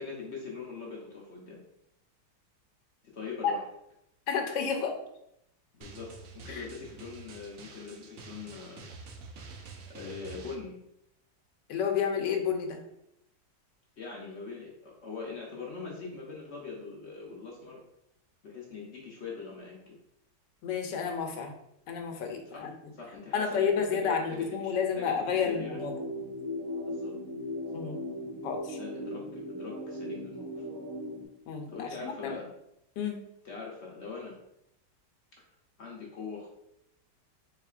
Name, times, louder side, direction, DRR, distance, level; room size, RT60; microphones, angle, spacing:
voice 1, 0.0-1.6 3.1-3.7 5.7-6.1 6.3-8.9 9.9-10.8 14.0-17.8 18.4-20.0 22.4-22.7 22.9-25.8 26.9-27.1 27.7-27.8 28.7-30.6 31.7-32.5 33.4-34.4 35.8-36.5, left 4 dB, 55° left, -3 dB, 0.8 m, -42 dB
voice 2, 4.3-5.0 6.5-6.6 11.7-12.8 20.6-21.5 21.9-22.7 23.3-25.9 27.7-28.0 28.4-28.8 31.5-32.3 33.0-33.2, left 6 dB, 85° left, 4 dB, 1.3 m, -30 dB
Drum, 5.8-10.6, right 4 dB, 70° right, 0.8 m, -47 dB
sound 1, 25.3-31.3, left 1 dB, 35° right, 0.7 m, -38 dB
4.1 x 3.6 x 2.4 m, 0.79 s
omnidirectional pair, 1.9 m